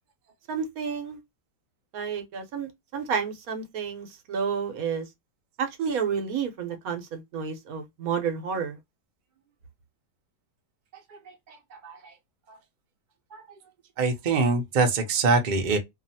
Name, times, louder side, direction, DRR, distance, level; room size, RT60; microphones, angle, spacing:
voice 1, 0.5-1.2 1.9-5.1 5.6-8.8, right 6 dB, 60° right, 1.1 m, -30 dB
voice 2, 14.0-15.8, right 3 dB, 90° right, 0.4 m, -24 dB
2.8 x 2.4 x 2.6 m
omnidirectional pair, 1.9 m